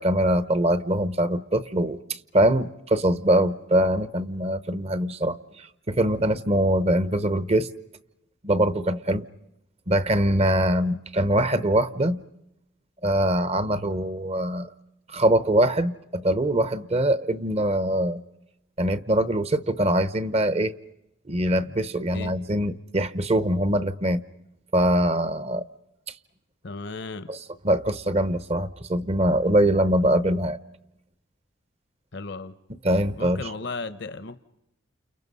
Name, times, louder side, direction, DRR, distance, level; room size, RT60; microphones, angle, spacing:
voice 1, 0.0-2.0 2.3-7.7 8.4-9.2 9.9-12.2 13.0-14.7 15.1-18.2 18.8-20.8 21.3-24.2 24.7-25.7 27.3-27.4 27.6-30.6 32.8-33.4, right 1 dB, 30° right, 15 dB, 0.9 m, -23 dB
voice 2, 26.6-27.3 32.1-32.5 33.2-34.4, left 3 dB, 55° left, 12 dB, 0.8 m, -35 dB
29.5 x 29.5 x 5.5 m, 0.85 s
head